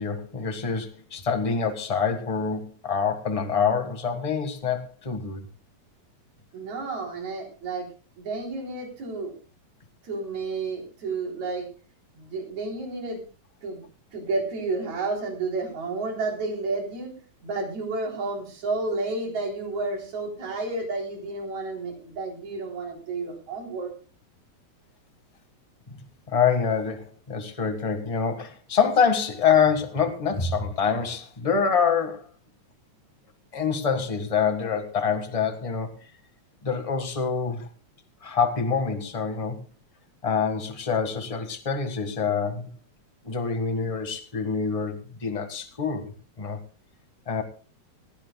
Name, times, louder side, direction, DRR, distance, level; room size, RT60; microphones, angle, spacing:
voice 1, 0.0-5.4 26.3-32.2 33.5-35.9 36.6-37.7 38.2-39.6 40.2-42.7 43.2-46.6 47.3-47.4, left 6 dB, 20° left, 6 dB, 1.1 m, -26 dB
voice 2, 6.5-7.9 8.2-9.3 10.0-11.7 12.2-13.2 13.6-13.8 14.1-17.1 17.4-23.9, right 3 dB, 70° right, 1 dB, 5.0 m, -31 dB
19.5 x 15.5 x 2.3 m, 0.35 s
omnidirectional pair, 3.4 m